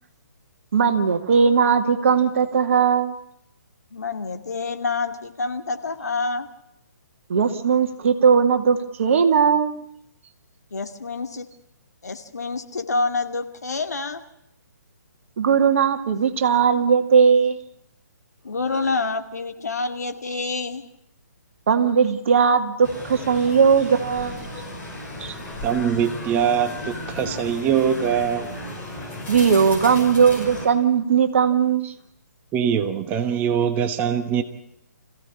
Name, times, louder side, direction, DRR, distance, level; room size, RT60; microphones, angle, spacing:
voice 1, 0.7-3.1 7.3-9.8 15.4-17.6 21.7-24.5 25.2-25.3 29.3-31.9, right 6 dB, 45° right, 7 dB, 2.1 m, -18 dB
voice 2, 3.9-6.5 10.7-11.5 12.0-14.2 18.4-20.8, left 3 dB, 65° left, 6 dB, 2.3 m, -27 dB
sound 1, 22.8-30.7, left 1 dB, 15° left, 5.9 m, -34 dB
voice 3, 25.6-28.5 32.5-34.4, right 8 dB, 15° right, 9 dB, 1.1 m, -22 dB
26.5 x 16.0 x 8.6 m, 0.79 s
figure-of-eight pair, 130°, 10 cm